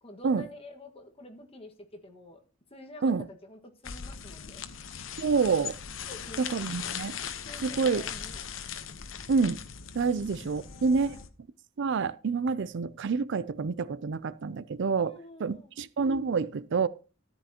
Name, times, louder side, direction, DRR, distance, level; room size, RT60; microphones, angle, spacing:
voice 1, 0.0-2.4 2.7-4.6 6.0-6.4 7.4-8.4 10.0-10.2 10.6-11.2 15.0-15.7, left 1 dB, 30° left, 1.7 m, -48 dB
sound 1, 3.8-11.3, left 7 dB, 70° left, 1.0 m, -39 dB
voice 2, 5.2-5.8 6.4-7.2 7.6-8.0 9.3-9.6 9.9-11.2 11.8-15.1 15.4-16.9, right 5 dB, 60° right, 0.5 m, -27 dB
13.5 x 10.0 x 2.9 m
head